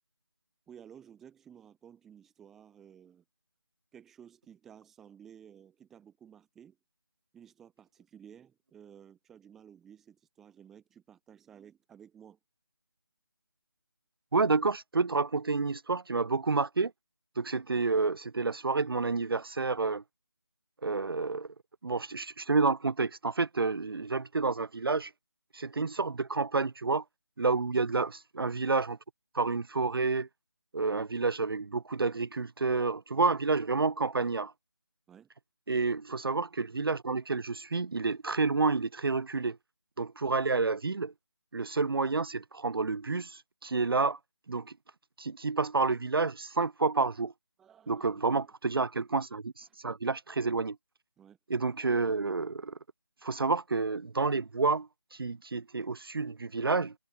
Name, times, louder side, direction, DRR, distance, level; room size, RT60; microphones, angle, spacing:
voice 1, 0.7-3.2 3.9-6.8 7.3-12.4 27.7-27.8 35.1-35.3 47.6-48.4 49.7-49.8 51.2-51.4, right 8 dB, ahead, 1.6 m, -55 dB
voice 2, 14.3-16.9 17.4-20.0 20.8-21.5 21.8-25.1 25.5-27.0 27.4-29.0 29.3-30.3 30.7-34.5 35.7-39.6 40.0-41.1 41.5-44.2 44.5-44.7 45.2-47.3 47.9-50.8 51.5-52.8 53.2-56.9, right 4 dB, 70° right, 0.5 m, -29 dB
figure-of-eight pair, 180°, 13 cm